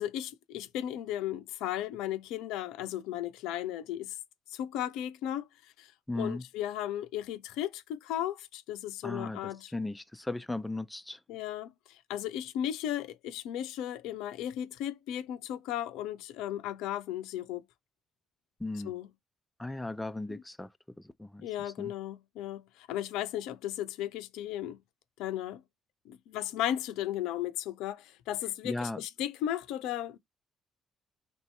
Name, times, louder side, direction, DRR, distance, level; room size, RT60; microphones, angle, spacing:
voice 1, 0.0-4.2 4.5-5.9 6.1-9.7 11.3-17.6 18.8-19.1 20.3-20.4 21.4-24.8 25.2-25.6 26.1-30.2, left 11 dB, 70° left, 0.5 m, -35 dB
voice 2, 6.1-6.4 9.0-11.2 18.6-18.9 19.6-20.7 21.0-21.4 21.8-21.9 28.6-29.0, left 2 dB, 10° left, 0.4 m, -36 dB
3.0 x 2.6 x 4.4 m
hypercardioid pair, 45°, 0 cm